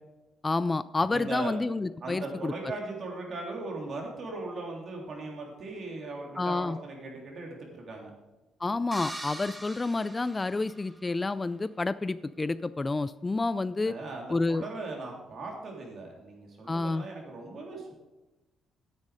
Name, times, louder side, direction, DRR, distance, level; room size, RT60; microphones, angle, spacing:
voice 1, 0.4-2.5 6.4-6.8 8.6-13.9 14.3-14.6 16.7-17.1, left 3 dB, 25° left, 16 dB, 0.3 m, -29 dB
voice 2, 1.1-1.5 2.0-8.1 13.8-17.9, right 3 dB, 55° right, -1 dB, 3.3 m, -38 dB
sound 1, 8.9-11.1, right 1 dB, 15° right, 1.2 m, -42 dB
9.8 x 8.3 x 5.0 m, 1.1 s
cardioid pair, 90°, 0 cm